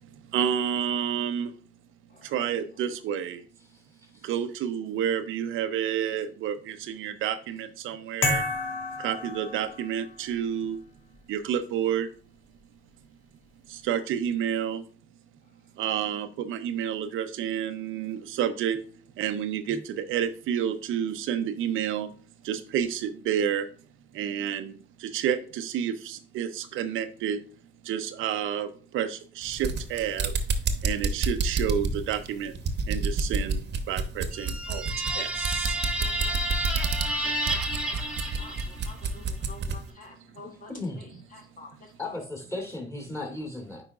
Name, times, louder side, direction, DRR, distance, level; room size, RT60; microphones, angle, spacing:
voice 1, 0.3-1.5 2.3-3.4 4.3-8.4 9.0-10.8 11.3-12.1 13.9-14.8 15.8-18.8 19.2-22.1 22.5-23.6 24.2-24.7 25.1-27.4 27.9-28.7 28.9-30.3 30.8-32.5 32.9-33.6 33.9-34.8 35.2-35.3, right 9 dB, 85° right, 9 dB, 0.7 m, -29 dB
voice 2, 3.6-4.3 40.7-41.0 42.0-43.8, left 2 dB, 15° left, 1 dB, 2.9 m, -36 dB
sound 1, 8.2-10.1, left 2 dB, 65° left, 1.5 m, -30 dB
sound 2, 29.4-39.8, right 4 dB, 60° right, 1.0 m, -29 dB
sound 3, 34.3-39.0, right 1 dB, 5° right, 1.3 m, -31 dB
voice 3, 35.6-36.4 37.1-40.7 41.0-41.1 41.3-41.9, left 2 dB, 40° left, 2 dB, 1.5 m, -49 dB
8.7 x 4.9 x 2.4 m, 0.40 s
cardioid pair, 90°, 20 cm